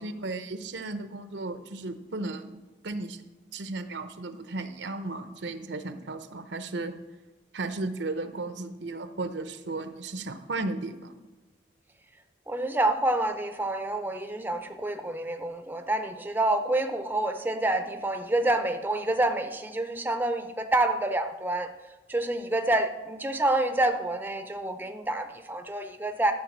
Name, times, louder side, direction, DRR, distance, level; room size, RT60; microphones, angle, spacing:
voice 1, 0.0-3.2 3.5-6.9 7.5-11.2, right 2 dB, 75° right, 10 dB, 0.8 m, -35 dB
voice 2, 12.5-21.7 22.1-26.3, right 1 dB, 10° right, 7 dB, 0.5 m, -28 dB
12.5 x 4.5 x 7.2 m, 1.2 s
head